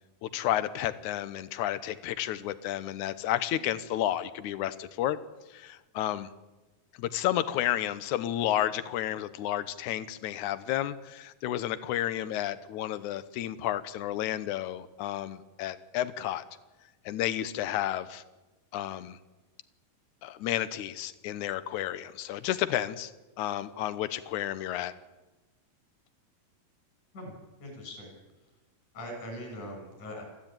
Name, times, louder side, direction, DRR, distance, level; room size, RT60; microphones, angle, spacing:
voice 1, 0.2-5.2 5.5-6.3 7.0-16.4 17.1-18.2 18.7-19.2 20.2-23.1 23.4-24.9, left 12 dB, 70° left, 14 dB, 2.1 m, -31 dB
voice 2, 27.1-28.1 28.9-30.2, equal, 55° left, 3 dB, 8.0 m, -41 dB
23.5 x 15.5 x 9.0 m, 1.1 s
omnidirectional pair, 4.2 m